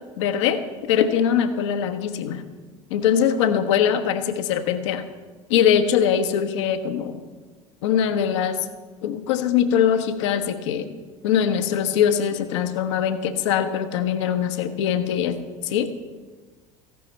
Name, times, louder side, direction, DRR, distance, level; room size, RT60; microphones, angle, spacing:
voice 1, 0.2-2.4 2.9-5.0 5.5-7.2 7.8-8.7 9.0-10.9 11.2-15.9, left 8 dB, 60° left, 9 dB, 1.1 m, -22 dB
15.5 x 11.5 x 4.3 m, 1.4 s
figure-of-eight pair, 70°, 17 cm